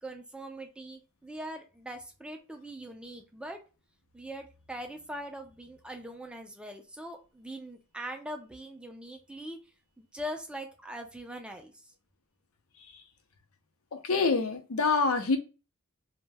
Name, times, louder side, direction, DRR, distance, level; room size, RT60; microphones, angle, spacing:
voice 1, 0.0-3.6 4.1-11.9, equal, 5° right, 0.4 m, -42 dB
voice 2, 13.9-15.4, left 4 dB, 80° left, 0.6 m, -27 dB
2.7 x 2.1 x 3.2 m
head